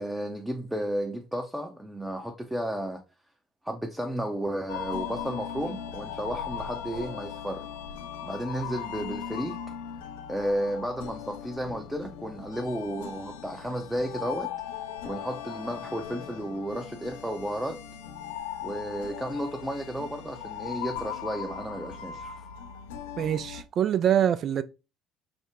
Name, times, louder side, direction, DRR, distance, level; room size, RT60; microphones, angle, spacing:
voice 1, 0.0-3.0 3.6-7.6 8.2-9.6 10.3-14.5 15.0-17.8 18.6-22.5, right 1 dB, 5° right, 0.6 m, -33 dB
sound 1, 4.7-23.6, left 8 dB, 70° left, 0.4 m, -38 dB
voice 2, 23.2-24.6, right 10 dB, 50° right, 0.3 m, -24 dB
5.1 x 2.1 x 3.4 m
figure-of-eight pair, 55°, 0 cm